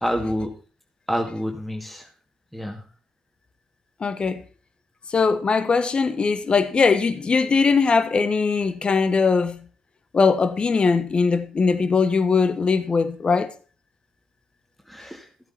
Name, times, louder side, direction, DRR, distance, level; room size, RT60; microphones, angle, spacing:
voice 1, 0.0-0.5 1.1-2.1 2.5-2.8 14.9-15.3, equal, ahead, 2.2 m, -27 dB
voice 2, 4.0-4.4 5.1-9.6 10.1-13.5, left 4 dB, 45° left, 1.2 m, -20 dB
13.5 x 7.8 x 4.3 m
supercardioid pair, 60°, 2 cm